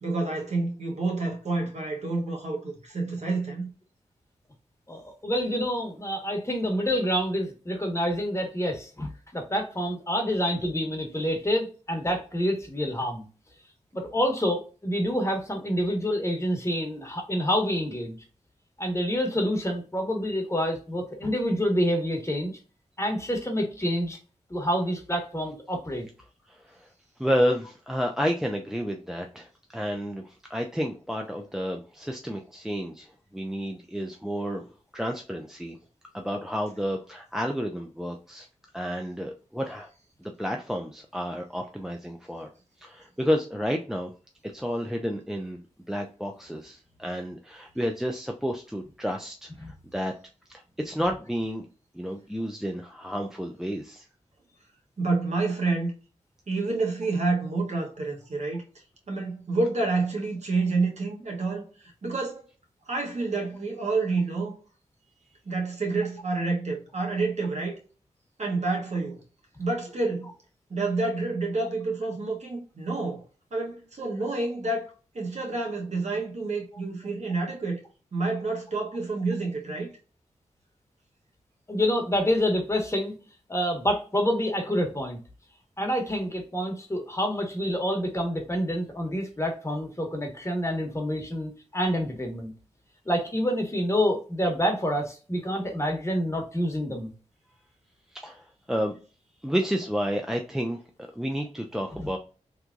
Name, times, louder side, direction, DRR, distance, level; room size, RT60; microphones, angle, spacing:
voice 1, 0.0-3.7 55.0-55.9 56.5-58.6 59.1-62.4 62.9-64.5 65.4-67.8 68.4-69.2 69.6-70.3 70.7-73.2 73.5-77.8 78.1-79.9, right 3 dB, 60° right, 1.4 m, -28 dB
voice 2, 4.9-13.3 13.9-18.2 18.8-22.6 23.0-24.2 24.5-26.0 49.6-49.7 81.7-83.1 83.5-85.2 85.8-92.5 93.0-97.1 101.9-102.1, equal, 20° left, 1.3 m, -27 dB
voice 3, 26.5-26.9 27.2-34.6 34.9-35.8 36.1-38.5 38.7-39.9 40.2-42.5 42.8-44.1 44.5-45.6 45.9-49.5 49.9-50.1 50.5-51.7 51.9-54.0 98.1-98.9 99.4-100.8 101.2-102.2, equal, 5° right, 0.5 m, -30 dB
3.5 x 3.1 x 2.5 m
cardioid pair, 50°, 13 cm